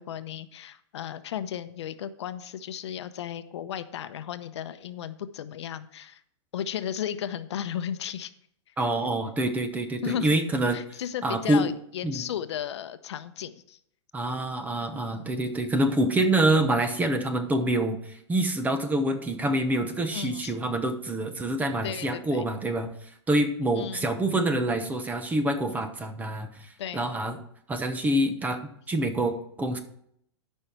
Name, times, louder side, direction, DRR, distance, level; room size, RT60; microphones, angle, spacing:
voice 1, 0.0-6.2 6.5-8.3 8.7-8.8 10.0-10.4 10.7-13.8 20.1-20.5 21.8-22.5 23.7-24.1 26.8-27.1, left 10 dB, 75° left, 12 dB, 0.8 m, -35 dB
voice 2, 8.8-10.8 11.2-11.7 12.0-12.2 14.1-22.9 23.3-27.4 27.7-29.8, right 1 dB, 10° right, 8 dB, 0.9 m, -26 dB
12.5 x 5.5 x 4.5 m, 0.69 s
hypercardioid pair, 140°, 14 cm